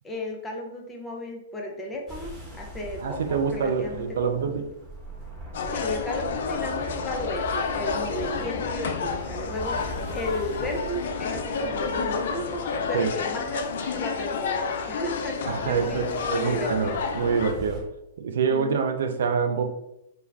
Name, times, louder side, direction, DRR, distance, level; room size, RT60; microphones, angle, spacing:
voice 1, 0.0-4.5 5.7-17.1 18.5-18.9, left 1 dB, 15° left, 0 dB, 0.5 m, -34 dB
sound 1, 2.1-17.8, equal, 10° right, 1.2 m, -41 dB
voice 2, 3.0-4.7 12.9-13.1 15.5-16.0 16.3-17.8 18.2-19.7, right 6 dB, 70° right, 7 dB, 0.3 m, -26 dB
sound 2, 5.5-17.5, left 5 dB, 65° left, 0.3 m, -30 dB
2.3 x 2.2 x 3.2 m, 0.86 s
hypercardioid pair, 120°, 0 cm